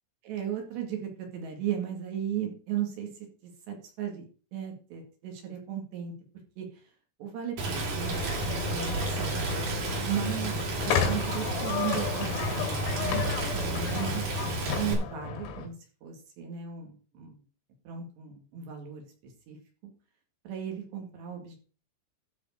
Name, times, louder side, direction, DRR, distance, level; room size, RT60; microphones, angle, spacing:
voice 1, 0.2-3.1 3.4-4.2 4.5-6.1 6.6-6.7 7.2-9.4 10.0-14.2 14.7-15.7 16.0-17.4 17.9-19.6 19.8-19.9 20.5-21.6, right 9 dB, 65° right, 2 dB, 3.9 m, -36 dB
Rain, 7.6-14.9, right 2 dB, 45° right, 4.2 m, -31 dB
sound 1, 8.0-15.7, left 7 dB, 85° left, 5.0 m, -33 dB
12.5 x 5.0 x 6.4 m, 0.38 s
omnidirectional pair, 5.9 m